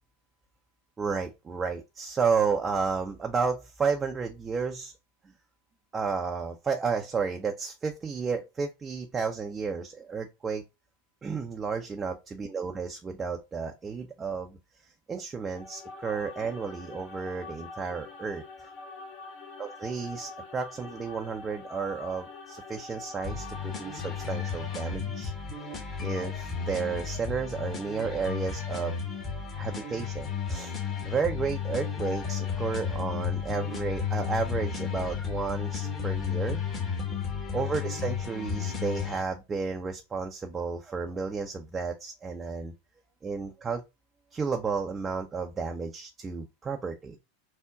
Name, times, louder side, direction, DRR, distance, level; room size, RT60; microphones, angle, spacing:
voice 1, 1.0-4.9 5.9-10.6 11.2-14.6 15.1-18.7 19.6-25.3 26.0-28.9 29.5-30.8 31.0-36.6 37.5-42.7 43.2-43.8 44.3-47.2, right 5 dB, 20° right, 0.5 m, -32 dB
sound 1, 15.4-24.9, left 3 dB, 40° left, 0.7 m, -45 dB
sound 2, 23.2-39.2, left 7 dB, 25° left, 1.1 m, -33 dB
3.6 x 2.1 x 3.7 m
figure-of-eight pair, 85°, 0 cm